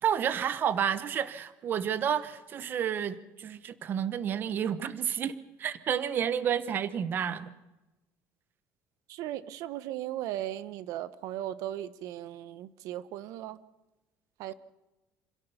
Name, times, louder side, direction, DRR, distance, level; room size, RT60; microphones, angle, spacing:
voice 1, 0.0-5.3 5.6-7.5, right 8 dB, 30° right, 15 dB, 1.0 m, -30 dB
voice 2, 9.1-13.6 14.4-14.5, right 13 dB, 60° right, 16 dB, 1.0 m, -37 dB
27.0 x 17.0 x 6.9 m, 1.1 s
cardioid pair, 175°, 6 cm